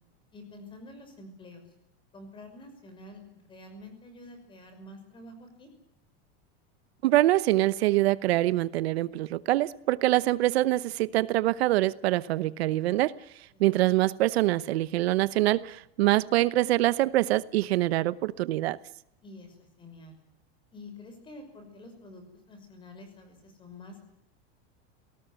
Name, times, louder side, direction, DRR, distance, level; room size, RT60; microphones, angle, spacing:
voice 1, 0.3-1.7 2.1-5.7 13.5-13.7 19.2-20.1 20.7-24.1, left 2 dB, 15° left, 5.8 m, -48 dB
voice 2, 7.0-13.1 13.6-18.8, right 16 dB, 75° right, 1.0 m, -24 dB
27.5 x 18.5 x 7.8 m
supercardioid pair, 170°, 32 cm